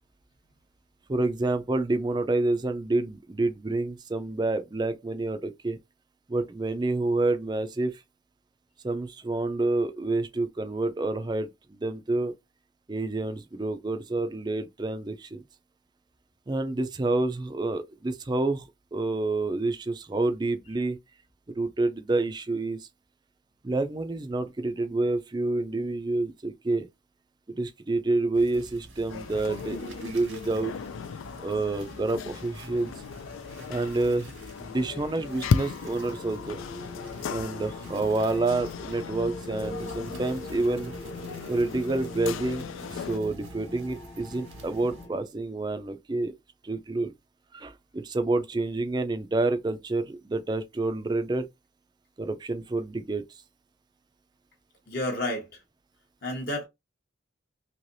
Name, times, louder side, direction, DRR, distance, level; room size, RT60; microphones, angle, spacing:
voice 1, 1.1-5.8 6.3-8.0 8.8-12.3 12.9-15.4 16.5-21.0 21.6-22.9 23.6-26.9 27.6-30.7 31.4-32.9 33.7-36.6 37.3-40.9 41.5-42.6 42.9-46.3 46.6-47.1 47.5-51.5 52.2-53.2, right 2 dB, 20° right, 0.4 m, -28 dB
sound 1, 28.3-45.1, right 2 dB, 85° right, 1.4 m, -48 dB
sound 2, 29.1-43.2, left 6 dB, 85° left, 0.3 m, -36 dB
voice 2, 30.3-30.6 54.9-55.6 56.2-56.7, left 1 dB, 50° left, 1.0 m, -31 dB
sound 3, 35.3-45.2, left 2 dB, 20° left, 0.8 m, -42 dB
3.2 x 2.9 x 2.6 m
head